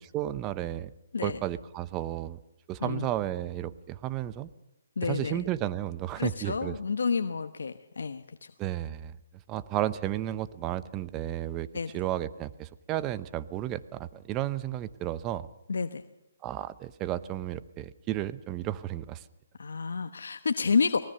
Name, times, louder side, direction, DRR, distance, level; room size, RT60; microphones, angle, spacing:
voice 1, 0.1-0.9 1.2-2.4 2.7-4.5 5.0-6.7 8.6-9.2 9.5-15.5 16.4-19.2, right 13 dB, 20° right, 15 dB, 0.8 m, -33 dB
voice 2, 5.0-5.4 6.2-8.5 11.7-11.9 15.7-16.0 19.6-21.0, left 5 dB, 80° left, 9 dB, 1.1 m, -29 dB
24.5 x 19.5 x 6.7 m, 0.86 s
hypercardioid pair, 160°, 0 cm